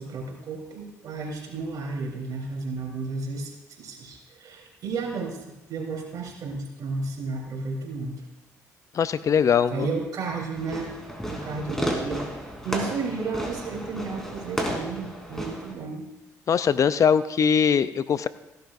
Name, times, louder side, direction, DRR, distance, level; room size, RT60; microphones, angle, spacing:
voice 1, 0.0-3.5 3.8-5.4 5.7-8.2 9.7-11.0 11.3-16.0, right 4 dB, 60° right, -1 dB, 3.7 m, -33 dB
voice 2, 8.9-9.9 16.5-18.3, left 7 dB, 50° left, 14 dB, 0.5 m, -21 dB
Fireworks, 10.6-15.7, equal, 5° left, 3.4 m, -32 dB
16.5 x 12.0 x 2.6 m, 0.95 s
supercardioid pair, 60°, 7 cm